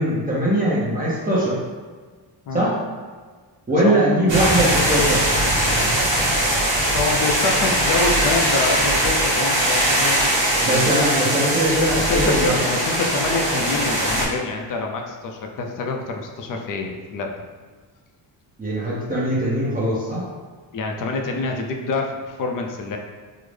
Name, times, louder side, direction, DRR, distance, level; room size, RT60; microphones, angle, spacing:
voice 1, 0.0-1.6 2.5-2.7 3.7-5.2 10.6-12.6 18.6-20.3, right 1 dB, 20° right, -7 dB, 0.7 m, -21 dB
sound 1, 4.3-14.2, right 1 dB, 40° right, 1.2 m, -20 dB
voice 2, 6.7-10.9 11.9-17.3 20.7-23.0, left 3 dB, 50° left, 2 dB, 0.5 m, -26 dB
3.7 x 2.0 x 3.2 m, 1.5 s
cardioid pair, 125°, 44 cm